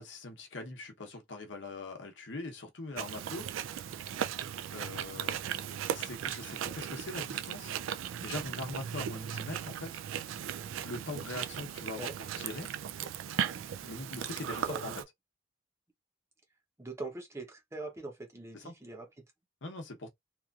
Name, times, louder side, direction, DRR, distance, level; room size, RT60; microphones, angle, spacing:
voice 1, 0.0-3.5 4.7-7.7 8.2-10.0 10.8-12.1 12.4-12.7 13.8-15.0 18.5-18.8 19.6-20.1, left 2 dB, 75° left, 0.8 m, -42 dB
Chewing mastication, 2.9-15.0, right 9 dB, 90° right, 0.3 m, -37 dB
voice 2, 14.6-14.9 16.8-19.1, right 2 dB, 15° right, 0.7 m, -42 dB
3.0 x 2.4 x 2.3 m
head